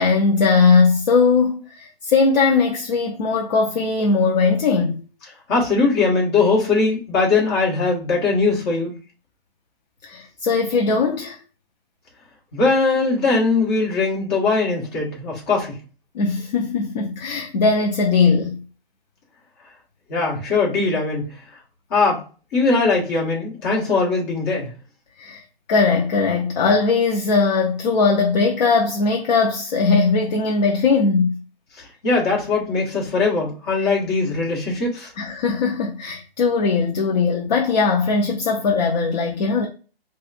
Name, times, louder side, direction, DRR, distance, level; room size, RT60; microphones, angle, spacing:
voice 1, 0.0-5.0 10.0-11.4 16.1-18.6 25.2-25.4 25.7-31.4 33.8-33.9 35.2-39.7, left 4 dB, 45° left, 0.6 m, -19 dB
voice 2, 5.5-8.9 12.5-15.8 20.1-21.3 21.9-22.2 22.5-24.7 32.0-35.1, left 3 dB, 25° left, 1.4 m, -20 dB
4.1 x 2.4 x 2.4 m
hypercardioid pair, 155°, 30 cm